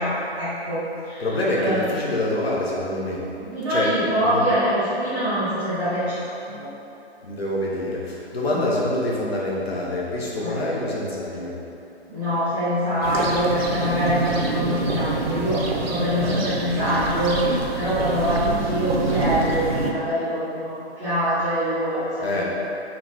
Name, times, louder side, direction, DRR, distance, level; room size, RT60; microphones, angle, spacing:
voice 1, 0.0-1.3 1.5-1.9 3.4-6.7 8.5-8.6 10.4-10.6 12.1-22.4, equal, 5° right, -19 dB, 0.4 m, -24 dB
voice 2, 1.2-3.2 3.7-4.5 7.2-11.6 22.2-22.4, left 1 dB, 65° left, -5 dB, 1.1 m, -26 dB
sound 1, 13.0-19.9, right 3 dB, 60° right, 0.6 m, -26 dB
4.3 x 3.0 x 3.9 m, 2.9 s
figure-of-eight pair, 135°, 34 cm